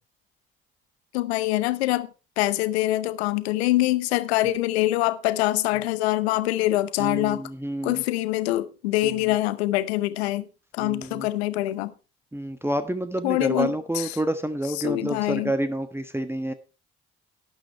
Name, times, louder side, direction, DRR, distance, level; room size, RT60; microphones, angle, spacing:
voice 1, 1.1-2.1 2.4-7.4 7.8-10.5 10.7-11.9 13.2-14.2 14.8-15.5, left 16 dB, 85° left, 0.8 m, -24 dB
voice 2, 7.0-8.0 9.0-9.1 10.8-11.3 12.3-16.5, right 1 dB, 10° right, 1.3 m, -28 dB
12.0 x 9.2 x 4.5 m
hypercardioid pair, 45°, 31 cm